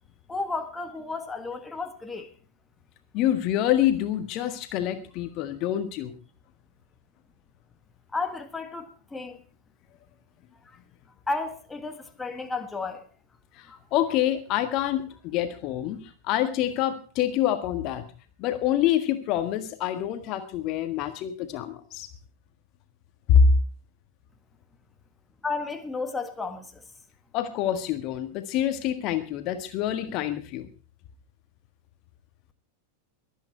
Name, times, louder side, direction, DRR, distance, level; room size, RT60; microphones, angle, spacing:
voice 1, 0.3-2.3 8.1-9.4 11.3-13.1 13.7-13.8 25.4-26.8, left 3 dB, 10° left, 1.6 m, -33 dB
voice 2, 3.1-6.1 13.6-16.0 16.2-18.0 18.4-22.1 23.3-23.5 27.3-30.7, left 10 dB, 40° left, 1.6 m, -26 dB
23.0 x 9.1 x 4.6 m
figure-of-eight pair, 90°, 0 cm